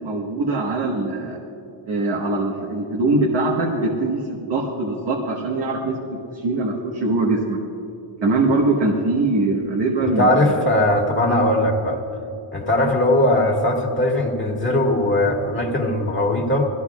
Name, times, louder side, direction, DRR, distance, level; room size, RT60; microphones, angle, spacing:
voice 1, 0.0-1.4 1.9-7.6 8.2-10.6, right 2 dB, 60° right, -1 dB, 1.5 m, -22 dB
voice 2, 10.0-12.0 12.5-16.7, left 1 dB, 25° left, -1 dB, 2.0 m, -19 dB
20.0 x 14.5 x 2.4 m, 2.7 s
cardioid pair, 135°, 47 cm